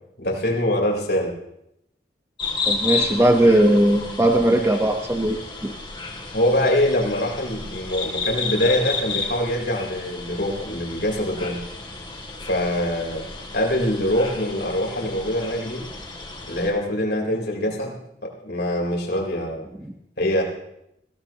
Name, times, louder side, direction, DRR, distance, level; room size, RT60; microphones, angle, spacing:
voice 1, 0.2-1.3 6.3-11.6 12.4-13.2 13.5-15.8 16.5-19.7 20.2-20.4, left 1 dB, 70° left, -1 dB, 4.1 m, -24 dB
sound 1, 2.4-16.7, left 4 dB, 30° left, 2.8 m, -32 dB
voice 2, 2.6-5.7, right 1 dB, 15° right, 3 dB, 1.1 m, -18 dB
21.5 x 16.5 x 3.0 m, 0.79 s
head